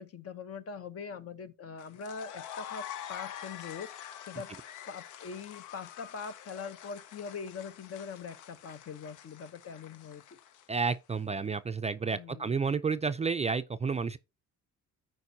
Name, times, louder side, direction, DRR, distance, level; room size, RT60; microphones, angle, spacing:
voice 1, 0.0-3.9 4.3-4.5 4.9-10.2 12.1-12.6, left 5 dB, 50° left, 0.9 m, -42 dB
sound 1, 1.8-11.1, left 10 dB, 80° left, 0.7 m, -46 dB
voice 2, 10.7-14.2, right 5 dB, 20° right, 0.4 m, -31 dB
14.0 x 4.7 x 2.7 m
cardioid pair, 90°, 30 cm